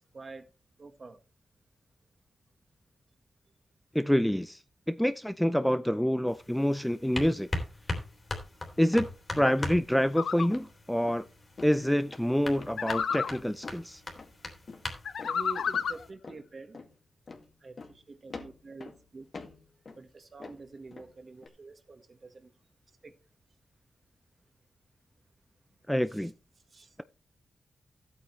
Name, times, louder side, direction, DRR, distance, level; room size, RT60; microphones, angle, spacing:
voice 1, 0.1-0.4 0.8-1.2 15.2-16.8 17.6-19.3 20.0-22.5 23.0-23.1 26.1-26.3 26.7-26.9, right 3 dB, 40° right, 1.5 m, -47 dB
voice 2, 3.9-4.6 4.9-7.5 8.8-9.1 9.3-11.2 11.6-14.0 25.9-26.3, equal, 5° left, 0.5 m, -27 dB
sound 1, 6.3-16.1, left 2 dB, 25° left, 3.0 m, -41 dB
sound 2, 8.9-9.1 9.5-9.7 10.0-10.2 10.5-10.7 11.0-11.3 11.6-11.8 12.1-12.3 12.6-13.3 13.6-13.9 14.2-14.3 14.7-14.9 15.2-15.4 15.7-15.9 16.2-16.4 16.7-16.9 17.3-17.5 17.8-18.0 18.3-19.0 19.3-20.1 20.4-21.1 21.4-21.5, left 4 dB, 40° left, 2.1 m, -46 dB
sound 3, 10.2-10.5 12.8-13.4 15.0-16.0, left 6 dB, 80° left, 0.9 m, -31 dB
15.0 x 8.7 x 3.2 m
wide cardioid pair, 150°, 0 cm